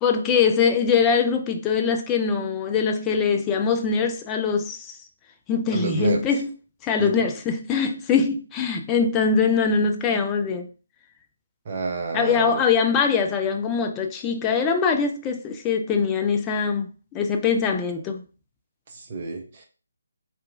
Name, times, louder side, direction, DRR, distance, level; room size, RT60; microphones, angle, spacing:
voice 1, 0.0-4.9 5.5-6.5 6.8-10.7 12.1-18.2, left 5 dB, 15° left, 0.3 m, -22 dB
voice 2, 5.7-6.2 7.0-7.1 11.7-12.6 18.9-19.7, right 3 dB, 40° right, 0.6 m, -29 dB
2.9 x 2.3 x 2.5 m
figure-of-eight pair, 145°, 0 cm